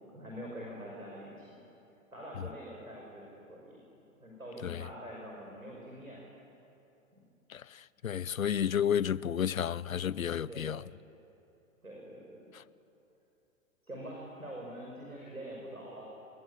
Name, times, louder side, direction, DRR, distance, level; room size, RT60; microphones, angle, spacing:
voice 1, 0.1-1.6 2.1-3.8 4.2-6.2 7.1-7.2 10.5-10.7 11.8-12.5 13.8-16.1, equal, 90° right, 5.8 m, -45 dB
voice 2, 7.5-10.8 12.5-12.6, left 9 dB, 75° left, 0.7 m, -32 dB
26.0 x 22.0 x 9.8 m
figure-of-eight pair, 105°, 41 cm